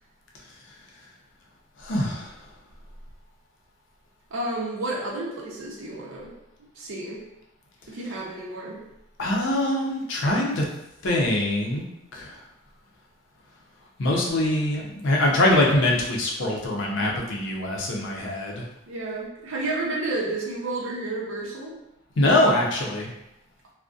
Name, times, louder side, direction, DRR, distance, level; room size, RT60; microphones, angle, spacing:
voice 1, 1.8-2.3 9.2-10.6 11.0-11.8 12.1-12.4 14.0-18.6 22.2-23.1, left 1 dB, 65° left, -1 dB, 0.5 m, -23 dB
voice 2, 4.3-6.3 6.8-7.2 7.9-8.8 18.9-21.7, right 2 dB, 75° right, -3 dB, 0.6 m, -31 dB
2.5 x 2.1 x 2.3 m, 0.87 s
head